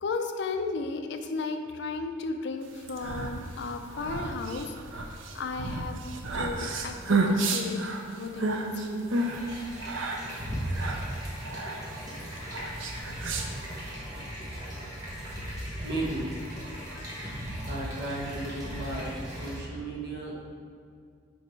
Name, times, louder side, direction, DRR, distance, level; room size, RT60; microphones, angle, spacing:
voice 1, 0.0-6.0 6.3-7.8 8.1-9.1 14.2-14.3 14.7-14.8 16.9-17.5, left 3 dB, 60° left, 6 dB, 0.4 m, -35 dB
sound 1, 2.7-13.9, right 2 dB, 70° right, 0.6 m, -31 dB
sound 2, 9.1-19.6, equal, 20° right, 1.1 m, -37 dB
voice 2, 15.8-16.3 17.7-20.3, right 2 dB, 55° right, -3 dB, 1.1 m, -35 dB
5.3 x 5.0 x 4.5 m, 2.2 s
head